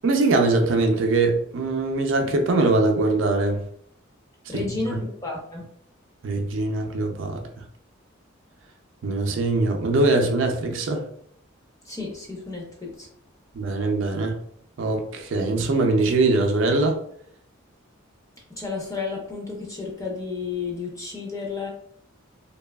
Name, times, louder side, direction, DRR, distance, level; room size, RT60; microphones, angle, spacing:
voice 1, 0.0-3.6 4.5-4.6 6.2-7.4 9.0-11.0 13.5-14.4 14.8-17.0, right 2 dB, 70° right, 4 dB, 0.4 m, -22 dB
voice 2, 4.5-5.7 11.8-13.1 18.5-21.7, left 4 dB, 15° left, -2 dB, 0.6 m, -32 dB
2.6 x 2.3 x 2.2 m, 0.66 s
head